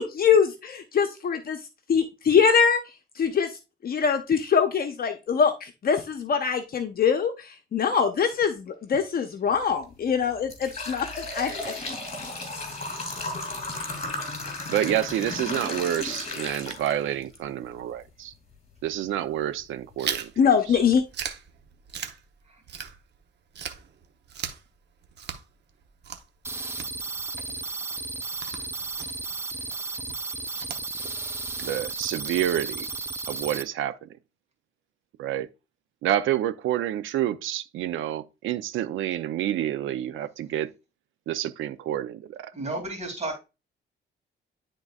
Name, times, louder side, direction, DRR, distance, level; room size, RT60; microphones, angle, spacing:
voice 1, 0.0-1.6 1.9-2.8 3.2-3.5 3.8-11.8 20.4-21.0, left 6 dB, 50° left, 0.9 m, -23 dB
sound 1, 9.5-9.7 10.2-17.4 17.8-17.9 18.8-18.9 19.4-19.5 19.9-20.1, left 2 dB, 35° left, 2.6 m, -34 dB
voice 2, 14.7-18.3 18.8-20.3 20.7-20.8 31.6-32.9 33.3-34.1 35.2-35.5 36.0-40.7 41.3-42.5, right 12 dB, 85° right, 0.6 m, -28 dB
Chewing mastication, 20.0-23.2 23.5-33.0, right 7 dB, 60° right, 0.9 m, -40 dB
voice 3, 22.4-22.8 42.5-43.4, right 2 dB, 35° right, 2.7 m, -33 dB
sound 2, 26.4-33.6, right 3 dB, 10° right, 0.5 m, -34 dB
11.0 x 3.8 x 2.4 m
cardioid pair, 90°, 20 cm